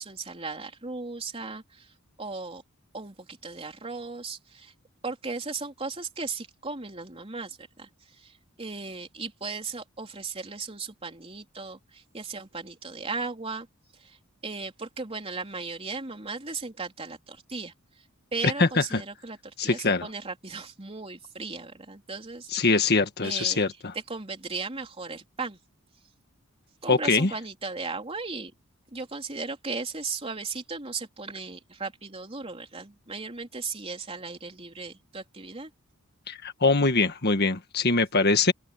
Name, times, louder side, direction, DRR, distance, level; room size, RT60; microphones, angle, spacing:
voice 1, 0.0-2.6 2.9-4.7 5.0-13.7 13.9-14.2 14.4-17.7 18.3-22.9 23.2-23.6 23.9-25.6 26.8-28.5 28.9-35.7, right 4 dB, 25° right, 3.6 m, -36 dB
voice 2, 18.6-19.0 19.6-20.1 22.5-23.9 26.9-27.3 36.3-38.5, left 3 dB, 50° left, 1.6 m, -23 dB
open air
head